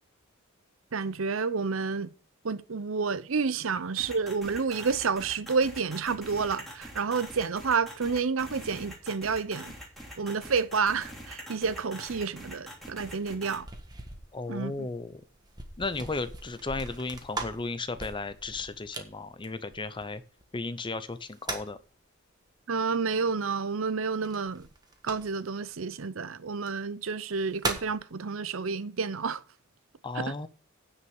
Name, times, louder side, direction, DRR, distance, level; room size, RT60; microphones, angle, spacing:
voice 1, 0.9-2.1 2.4-9.7 10.2-13.7 14.5-14.9 22.7-24.7 25.0-29.4 30.1-30.3, right 5 dB, 70° right, 0.7 m, -30 dB
sound 1, 4.0-13.6, equal, ahead, 2.9 m, -44 dB
sound 2, 13.0-20.4 21.1-21.9 24.2-25.6 26.5-26.7 27.2-28.0, right 3 dB, 20° right, 1.5 m, -40 dB
voice 2, 14.3-15.2 15.8-20.2 20.5-21.8 30.0-30.5, left 3 dB, 25° left, 0.6 m, -35 dB
9.7 x 5.7 x 7.0 m
head